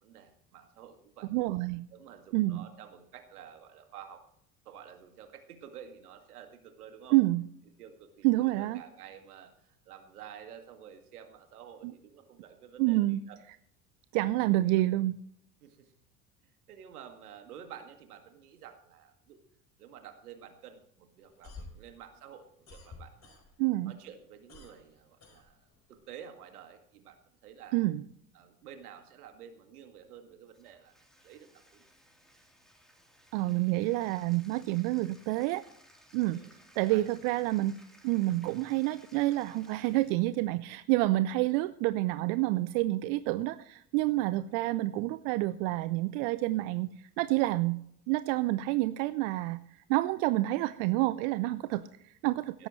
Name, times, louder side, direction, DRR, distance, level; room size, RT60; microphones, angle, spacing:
voice 1, 0.0-1.3 1.9-4.3 4.7-7.2 7.8-13.4 14.5-14.8 15.6-15.9 16.7-19.4 19.8-23.4 23.9-25.6 25.9-27.2 27.4-27.8 28.3-30.9 31.2-31.8 36.3-36.5 36.8-37.1 44.4-44.5 51.8-51.9 52.6-52.7, right 8 dB, 75° right, 6 dB, 2.2 m, -50 dB
voice 2, 1.3-1.9 2.3-2.7 7.1-7.4 8.2-8.8 11.8-11.9 12.8-13.2 14.1-15.2 23.6-23.9 27.7-28.0 33.3-35.6 36.1-36.4 36.8-37.8 38.0-47.8 48.1-52.7, right 18 dB, 55° right, 15 dB, 0.7 m, -28 dB
sound 1, 21.2-23.8 24.1-26.0, left 3 dB, 35° left, 4.8 m, -50 dB
Bathtub (filling or washing), 30.5-40.5, equal, ahead, 3.5 m, -60 dB
17.0 x 13.0 x 3.2 m, 0.71 s
hypercardioid pair, 70°, 45 cm